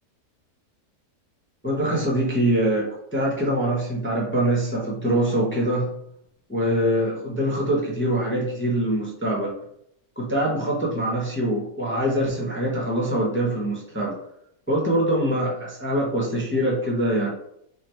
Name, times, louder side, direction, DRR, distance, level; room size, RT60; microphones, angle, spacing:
voice 1, 1.6-5.9 6.5-9.5 10.2-14.1 14.7-17.3, right 1 dB, 10° left, -3 dB, 0.7 m, -24 dB
3.2 x 2.7 x 4.3 m, 0.72 s
omnidirectional pair, 1.6 m